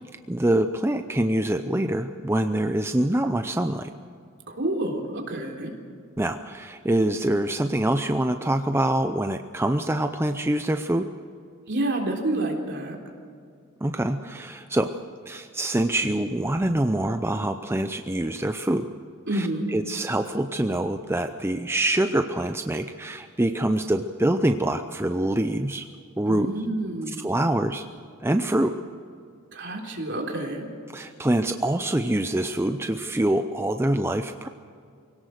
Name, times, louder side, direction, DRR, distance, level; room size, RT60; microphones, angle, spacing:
voice 1, 0.3-3.9 6.2-11.1 13.8-15.0 15.3-18.9 19.3-25.9 26.2-26.5 27.1-27.9 28.2-28.8 30.9-34.5, right 1 dB, 10° right, 7 dB, 0.5 m, -25 dB
voice 2, 4.5-5.8 11.7-13.0 19.3-19.7 26.3-27.2 29.5-30.7, right 1 dB, 55° right, 1 dB, 3.6 m, -28 dB
24.0 x 17.5 x 6.6 m, 2.3 s
head